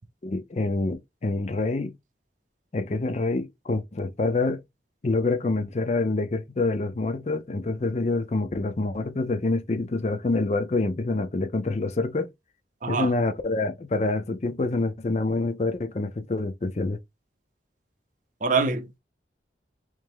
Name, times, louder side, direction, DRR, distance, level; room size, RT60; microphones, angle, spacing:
voice 1, 0.2-1.9 2.7-4.6 5.0-12.3 12.9-17.0, left 2 dB, 40° left, 0.5 m, -26 dB
voice 2, 12.8-13.1 18.4-19.0, right 4 dB, 45° right, 0.6 m, -25 dB
3.3 x 3.1 x 3.4 m
head